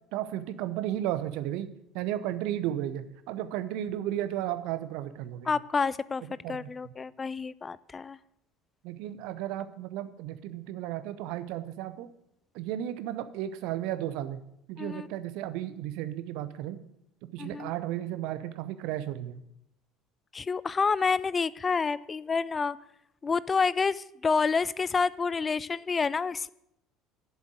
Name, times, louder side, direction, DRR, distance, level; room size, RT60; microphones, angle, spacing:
voice 1, 0.1-1.7 1.9-5.5 6.2-6.9 8.8-12.1 12.5-14.4 14.7-16.8 17.3-19.4, right 12 dB, 60° right, 13 dB, 0.6 m, -34 dB
voice 2, 5.5-6.2 6.5-8.2 14.8-15.1 17.4-17.7 20.3-22.8 23.2-26.5, left 5 dB, 25° left, 19 dB, 0.3 m, -28 dB
7.4 x 7.3 x 7.7 m, 0.79 s
figure-of-eight pair, 60°, 0 cm